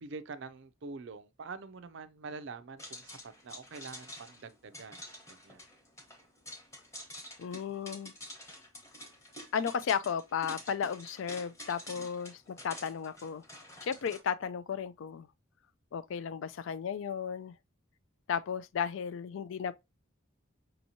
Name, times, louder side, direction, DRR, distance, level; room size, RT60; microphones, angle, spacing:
voice 1, 0.0-5.0 5.3-5.7, right 4 dB, 60° right, 0.5 m, -45 dB
sound 1, 2.8-14.2, left 1 dB, 15° left, 1.0 m, -48 dB
voice 2, 7.4-8.1 9.5-13.4 13.8-15.3 15.9-17.5 18.3-19.7, left 7 dB, 65° left, 0.3 m, -34 dB
5.3 x 2.9 x 2.7 m
head